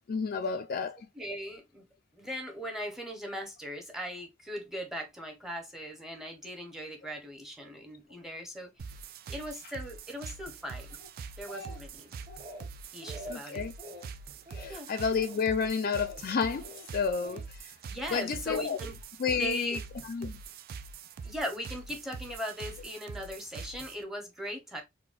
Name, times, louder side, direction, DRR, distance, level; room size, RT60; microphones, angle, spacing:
voice 1, 0.1-1.0 13.3-13.7 14.5-17.7 18.1-18.8 19.2-19.8 20.0-20.4, left 5 dB, 50° left, 0.4 m, -30 dB
voice 2, 1.1-1.9 2.1-8.7 9.3-11.0 11.4-12.1 12.9-13.6 14.7-14.9 17.9-19.0 19.4-19.8 21.2-24.8, equal, ahead, 0.8 m, -39 dB
sound 1, 8.8-24.0, right 5 dB, 50° right, 0.3 m, -44 dB
Speech, 11.0-12.0 12.3-12.7 13.0-13.4 13.8-14.1 14.5-14.8 15.1-15.5 15.9-16.2 16.6-17.4 18.2-18.4, equal, 25° right, 1.0 m, -46 dB
4.0 x 2.2 x 2.4 m
head